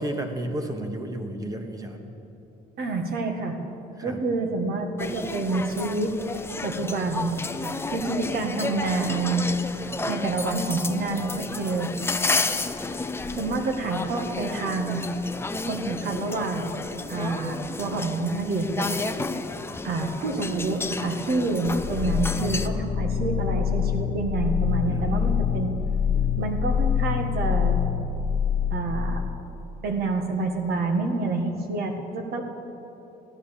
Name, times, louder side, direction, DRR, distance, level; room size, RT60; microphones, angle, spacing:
voice 1, 0.0-2.1 4.0-4.2 24.9-25.3, right 1 dB, 20° right, 5 dB, 1.6 m, -32 dB
voice 2, 2.8-3.6 4.0-6.2 6.6-7.3 7.9-9.4 10.1-11.9 13.3-15.0 15.6-16.8 17.1-18.9 19.8-25.7 26.4-27.8 28.7-29.2 29.8-32.4, right 3 dB, 65° right, 4 dB, 1.8 m, -28 dB
sound 1, 5.0-22.7, left 3 dB, 15° left, 0.6 m, -32 dB
sound 2, 21.6-29.5, left 7 dB, 50° left, 1.3 m, -25 dB
15.0 x 11.0 x 7.2 m, 2.9 s
cardioid pair, 110°, 17 cm